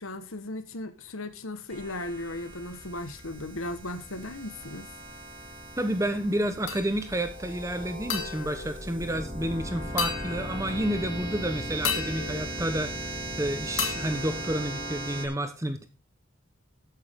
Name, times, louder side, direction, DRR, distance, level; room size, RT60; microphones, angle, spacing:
voice 1, 0.0-4.9, left 1 dB, 90° left, 1.4 m, -36 dB
sound 1, 1.7-15.3, right 1 dB, 30° right, 3.6 m, -38 dB
voice 2, 5.8-15.9, right 1 dB, 15° right, 1.0 m, -30 dB
sound 2, 6.7-7.3 8.1-9.5 10.0-11.0 11.8-13.3 13.8-15.2, left 7 dB, 75° left, 2.9 m, -35 dB
13.0 x 9.6 x 3.7 m
head